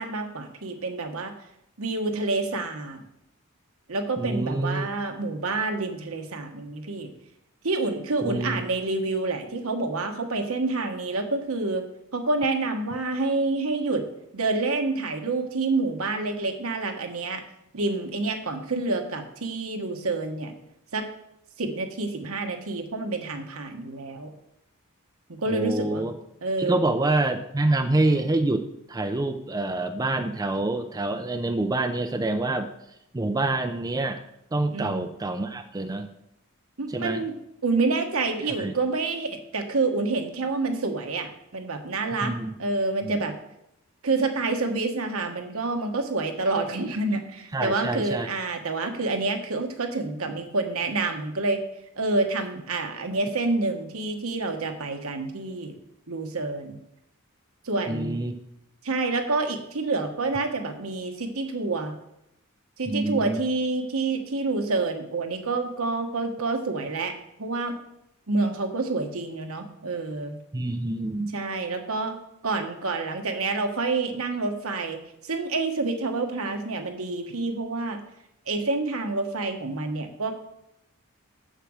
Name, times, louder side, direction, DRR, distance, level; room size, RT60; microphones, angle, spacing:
voice 1, 0.0-1.3 1.8-3.0 3.9-7.1 7.6-11.8 12.1-14.1 14.3-17.4 17.7-20.5 20.9-21.0 21.6-24.3 25.3-26.1 26.4-26.9 34.7-35.1 36.8-37.3 37.6-42.3 42.6-43.3 44.0-51.6 52.0-55.7 56.1-56.8 57.6-58.2 58.8-61.9 62.8-67.1 67.4-67.7 68.3-70.4 71.3-72.1 72.4-75.0 75.3-78.0 78.5-80.3, right 3 dB, 70° right, 5 dB, 1.2 m, -28 dB
voice 2, 4.2-4.9 8.2-8.6 25.5-26.1 26.6-32.7 33.1-34.2 34.5-36.1 36.9-37.2 38.6-38.7 42.2-42.5 43.0-43.2 47.5-48.3 57.9-58.3 62.9-63.4 70.5-71.3, right 2 dB, 15° right, 6 dB, 0.5 m, -26 dB
7.6 x 6.7 x 6.3 m, 0.82 s
head